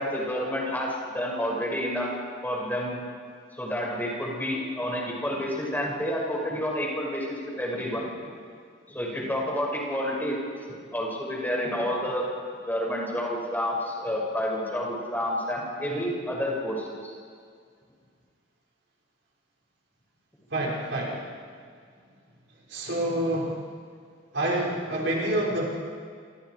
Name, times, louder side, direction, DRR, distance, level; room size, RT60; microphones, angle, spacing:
voice 1, 0.0-2.1 2.4-3.0 3.6-8.3 8.9-10.4 10.7-12.2 12.7-17.1, equal, 10° left, -2 dB, 6.1 m, -29 dB
voice 2, 20.5-21.3 22.7-23.6 24.3-25.7, right 1 dB, 65° right, -3 dB, 5.4 m, -27 dB
29.5 x 28.0 x 4.8 m, 2.1 s
head